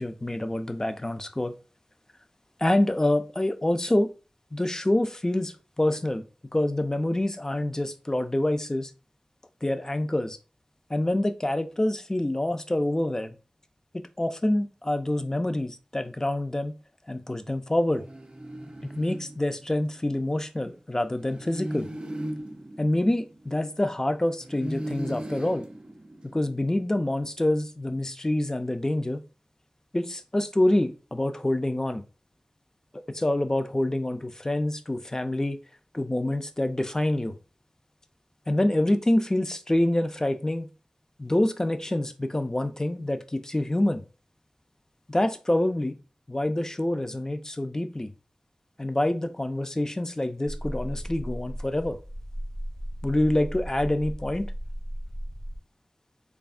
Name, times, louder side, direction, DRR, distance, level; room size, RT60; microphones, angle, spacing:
voice 1, 0.0-1.5 2.6-4.1 4.5-6.2 6.5-8.9 9.6-10.4 10.9-13.4 14.2-16.7 17.1-18.0 19.0-21.9 22.8-25.7 26.3-29.2 29.9-32.0 33.1-35.6 35.9-37.3 38.5-40.7 41.2-44.0 45.1-46.0 46.3-48.1 48.8-52.0 53.0-54.5, left 1 dB, 25° left, 8 dB, 0.4 m, -26 dB
sound 1, 17.9-20.0 21.2-23.9 24.4-26.6, right 1 dB, 40° right, 0.5 m, -37 dB
sound 2, 50.5-55.6, equal, 60° left, 0.8 m, -36 dB
3.3 x 2.0 x 2.4 m, 0.33 s
wide cardioid pair, 50°, 3 cm